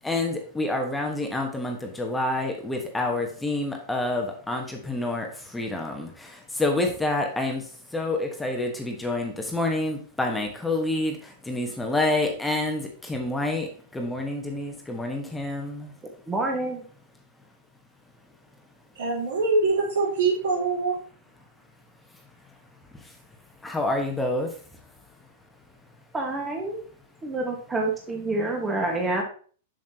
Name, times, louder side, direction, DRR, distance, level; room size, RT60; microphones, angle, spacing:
voice 1, 0.0-15.9 22.9-23.1 23.6-24.6, left 2 dB, 10° left, 2 dB, 1.3 m, -28 dB
voice 2, 16.3-16.8 26.1-26.8 27.2-29.2, right 2 dB, 15° right, 1 dB, 1.5 m, -27 dB
voice 3, 19.0-21.0, right 3 dB, 65° right, -3 dB, 3.5 m, -24 dB
7.2 x 6.5 x 2.9 m, 0.43 s
hypercardioid pair, 105°, 0 cm